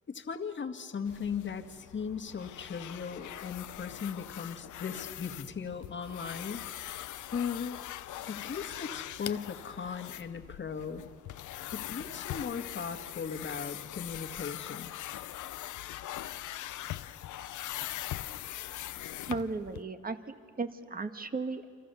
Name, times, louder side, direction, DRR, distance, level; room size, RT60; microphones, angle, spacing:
voice 1, 0.1-6.9 7.3-7.8 8.3-11.0 11.7-14.9, left 6 dB, 40° left, 6 dB, 1.9 m, -38 dB
sound 1, 1.1-19.8, left 13 dB, 75° left, 0.9 m, -42 dB
voice 2, 19.2-21.7, right 3 dB, 30° right, 9 dB, 1.7 m, -36 dB
29.0 x 26.0 x 7.0 m, 2.1 s
cardioid pair, 90°, 30 cm